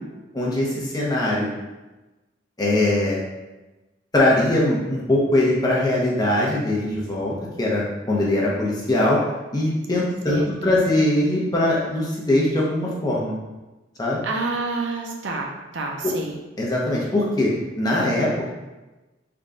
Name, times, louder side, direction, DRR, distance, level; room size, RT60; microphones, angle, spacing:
voice 1, 0.3-1.5 2.6-3.2 4.1-9.2 9.5-13.4 14.0-14.2 16.0-16.1 16.6-17.5 17.8-18.5, left 1 dB, 20° left, -4 dB, 0.6 m, -21 dB
voice 2, 14.2-16.4, right 3 dB, 65° right, 1 dB, 0.5 m, -28 dB
3.4 x 2.2 x 3.7 m, 1.1 s
head